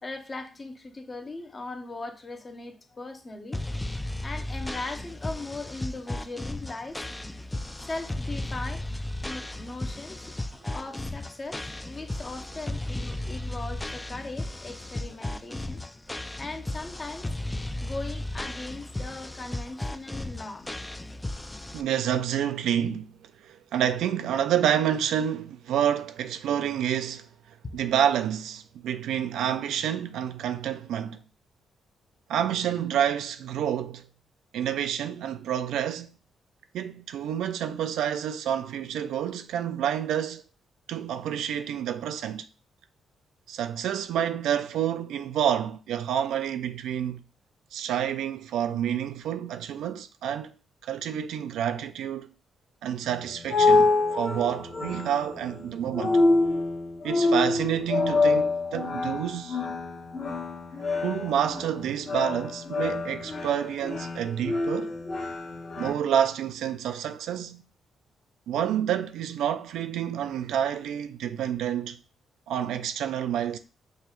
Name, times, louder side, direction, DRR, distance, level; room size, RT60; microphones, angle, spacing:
voice 1, 0.0-3.6 4.2-7.0 7.9-8.9 9.2-10.3 10.7-15.8 16.4-17.5 17.8-20.7, left 2 dB, 35° left, 0.7 m, -39 dB
sound 1, 3.5-21.8, left 1 dB, 15° left, 0.3 m, -35 dB
voice 2, 21.7-23.2 23.4-27.3 27.7-31.2 32.3-34.1 34.5-36.1 36.7-40.4 40.9-42.5 43.5-47.2 47.7-50.5 50.8-52.3 52.8-56.2 57.0-59.6 61.0-64.9 65.8-67.6 68.5-72.0 72.5-73.6, right 9 dB, 90° right, 0.3 m, -28 dB
sound 2, 53.0-65.9, left 3 dB, 55° left, 1.3 m, -26 dB
5.3 x 2.3 x 3.0 m
cardioid pair, 75°, 0 cm